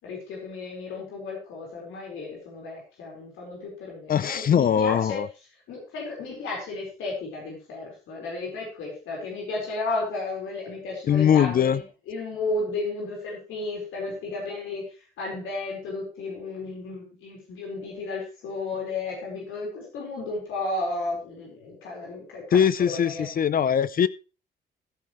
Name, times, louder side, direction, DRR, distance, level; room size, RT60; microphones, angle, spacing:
voice 1, 0.0-5.2 5.7-14.9 15.2-23.3, left 3 dB, 85° left, -2 dB, 4.7 m, -33 dB
voice 2, 4.1-5.3 11.1-11.8 22.5-24.1, left 8 dB, 45° left, 18 dB, 0.6 m, -21 dB
14.5 x 9.5 x 3.2 m, 0.33 s
cardioid pair, 90°, 20 cm